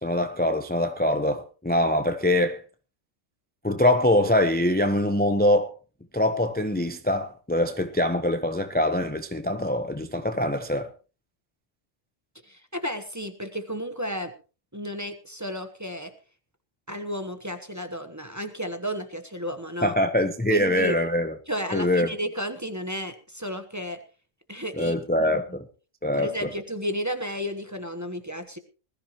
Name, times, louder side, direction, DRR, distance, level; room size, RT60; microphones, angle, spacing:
voice 1, 0.0-2.6 3.6-5.7 6.1-10.9 19.8-21.4 21.7-22.1 24.8-25.7 26.0-26.5, left 1 dB, 10° left, 0.7 m, -23 dB
voice 2, 12.4-14.3 14.7-16.1 16.9-20.0 20.5-21.0 21.5-24.0 24.5-24.9 25.3-25.4 26.1-28.6, equal, 15° right, 1.0 m, -32 dB
20.5 x 14.0 x 3.0 m
omnidirectional pair, 1.4 m